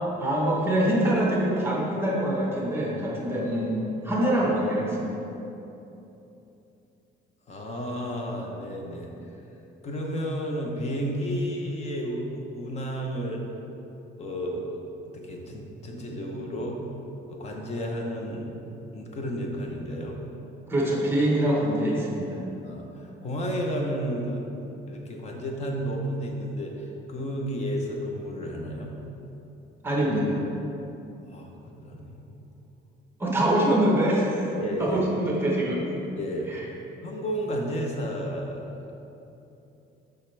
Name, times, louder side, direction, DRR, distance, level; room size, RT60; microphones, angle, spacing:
voice 1, 0.2-5.1 20.7-22.4 29.8-30.4 33.2-35.9 36.5-36.6, right 1 dB, 10° right, -4 dB, 1.0 m, -24 dB
voice 2, 7.5-9.1 9.8-13.4 14.2-14.6 15.1-16.8 17.3-18.5 18.9-20.2 22.6-24.5 24.9-29.0 31.3-32.4 34.6-35.0 36.2-36.6 37.0-38.9, equal, 35° left, 1 dB, 0.8 m, -32 dB
7.2 x 5.7 x 3.3 m, 3.0 s
cardioid pair, 165°, 20 cm